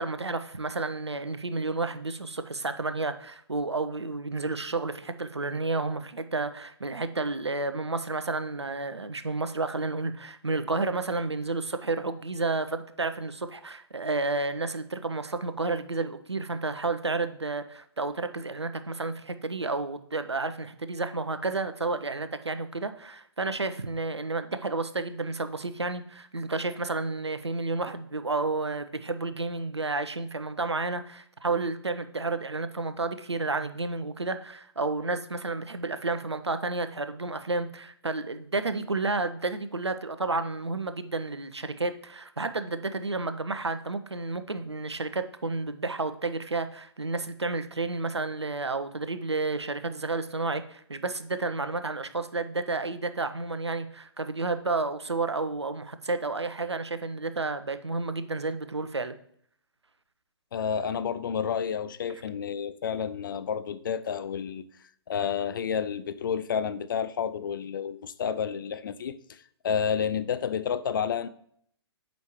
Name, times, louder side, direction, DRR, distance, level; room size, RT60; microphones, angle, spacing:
voice 1, 0.0-59.2, right 3 dB, 85° right, 10 dB, 0.6 m, -31 dB
voice 2, 60.5-64.6 65.1-71.3, left 7 dB, 50° left, 13 dB, 0.4 m, -30 dB
7.1 x 5.1 x 3.0 m, 0.66 s
figure-of-eight pair, 125°, 14 cm